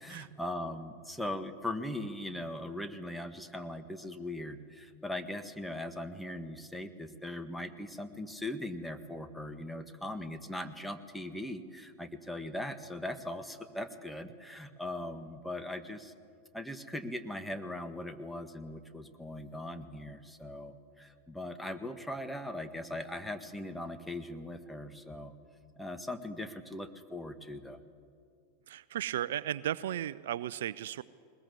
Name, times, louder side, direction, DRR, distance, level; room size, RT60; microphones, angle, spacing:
voice 1, 0.0-16.1 16.5-25.3 25.8-27.8, left 1 dB, 5° left, 8 dB, 1.7 m, -40 dB
voice 2, 28.7-31.0, right 11 dB, 70° right, 19 dB, 0.5 m, -35 dB
21.0 x 20.5 x 8.1 m, 2.3 s
hypercardioid pair, 95°, 0 cm